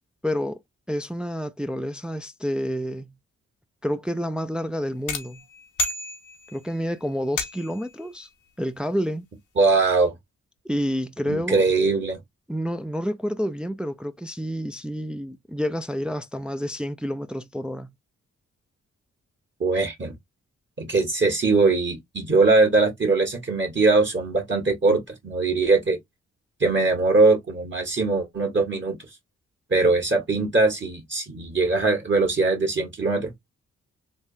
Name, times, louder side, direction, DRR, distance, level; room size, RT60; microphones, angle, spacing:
voice 1, 0.2-0.6 0.9-3.1 3.8-5.4 6.5-8.3 8.6-9.3 10.7-11.7 12.5-17.9, equal, 5° right, 0.3 m, -29 dB
sound 1, 5.1-6.7 7.4-7.9, left 2 dB, 80° left, 0.9 m, -31 dB
voice 2, 9.6-10.1 11.3-12.2 19.6-20.1 20.8-26.0 26.6-29.0 29.7-33.4, right 3 dB, 40° right, 1.4 m, -21 dB
3.5 x 2.2 x 2.6 m
cardioid pair, 50°, 30 cm